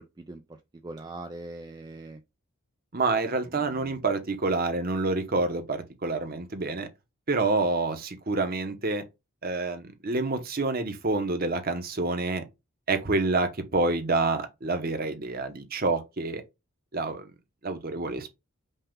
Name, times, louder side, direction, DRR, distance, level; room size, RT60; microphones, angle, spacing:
voice 1, 0.8-2.2 3.6-4.0, right 2 dB, 20° right, 0.3 m, -41 dB
voice 2, 2.9-6.9 7.3-9.0 9.4-12.4 12.9-16.4 16.9-17.2 17.6-18.3, right 3 dB, 40° right, 0.9 m, -28 dB
5.5 x 2.4 x 3.7 m
head